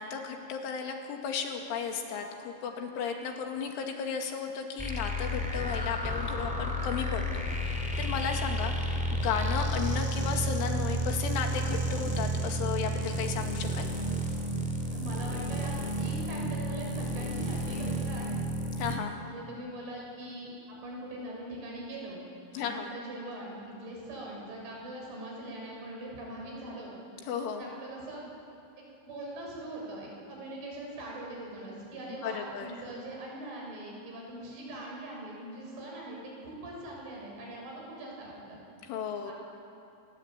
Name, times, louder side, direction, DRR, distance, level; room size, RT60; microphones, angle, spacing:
voice 1, 0.0-13.9 18.8-19.2 22.5-22.9 27.3-27.7 32.2-32.7 38.9-39.3, left 6 dB, 90° left, 3 dB, 4.7 m, -34 dB
sound 1, 4.8-19.0, equal, ahead, 2.0 m, -31 dB
voice 2, 14.9-18.4 19.2-22.3 22.5-27.0 27.5-28.3 28.8-38.6 39.3-39.4, right 1 dB, 85° right, -2 dB, 9.1 m, -42 dB
29.0 x 20.0 x 9.0 m, 2.6 s
omnidirectional pair, 5.4 m